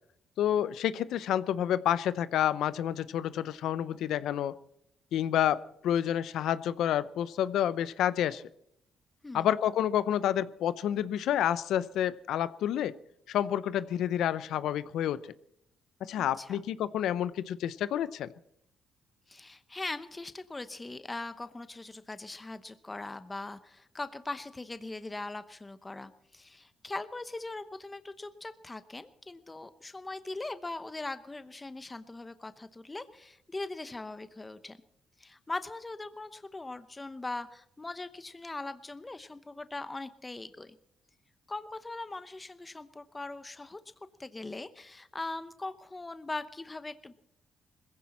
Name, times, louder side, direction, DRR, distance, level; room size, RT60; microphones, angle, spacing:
voice 1, 0.4-4.5 5.1-8.4 9.3-12.9 13.3-15.2 16.0-18.3, left 10 dB, 80° left, 16 dB, 0.6 m, -29 dB
voice 2, 9.2-9.5 16.2-16.6 19.3-34.8 35.2-40.7 41.5-43.8 44.2-47.1, left 2 dB, 20° left, 12 dB, 0.8 m, -40 dB
20.5 x 15.5 x 4.3 m, 0.75 s
cardioid pair, 90°, 0 cm